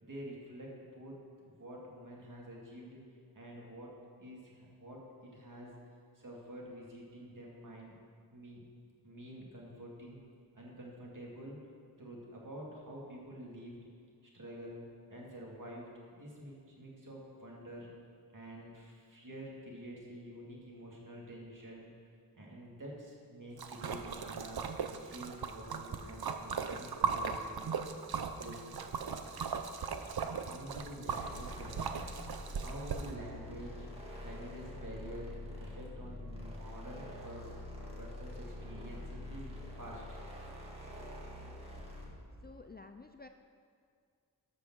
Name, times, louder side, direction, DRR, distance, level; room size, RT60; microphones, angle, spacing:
voice 1, 0.0-3.0 3.3-3.9 4.2-5.7 6.1-8.0 8.3-8.6 9.0-10.2 10.5-11.6 12.0-13.8 14.2-14.8 15.1-17.9 18.3-21.9 22.3-24.6 25.0-27.5 28.4-29.1 30.4-31.8 32.6-33.9 34.2-35.3 35.6-37.5 38.0-40.0, equal, 55° right, -3 dB, 2.4 m, -48 dB
Splash splatter, 23.6-33.1, right 6 dB, 70° right, 0.7 m, -38 dB
sound 1, 31.2-42.2, left 1 dB, 15° right, 2.0 m, -46 dB
voice 2, 42.4-43.3, left 3 dB, 25° left, 6 dB, 0.4 m, -51 dB
13.5 x 5.3 x 6.1 m, 2.2 s
wide cardioid pair, 90°, 39 cm